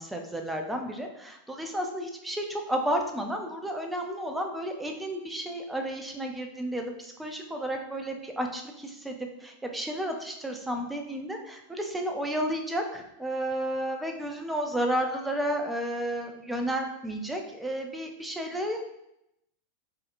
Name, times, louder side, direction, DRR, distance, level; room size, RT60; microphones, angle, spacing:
voice 1, 0.0-18.8, right 1 dB, 5° right, 3 dB, 0.5 m, -32 dB
4.8 x 2.9 x 2.5 m, 0.83 s
figure-of-eight pair, 90°, 0 cm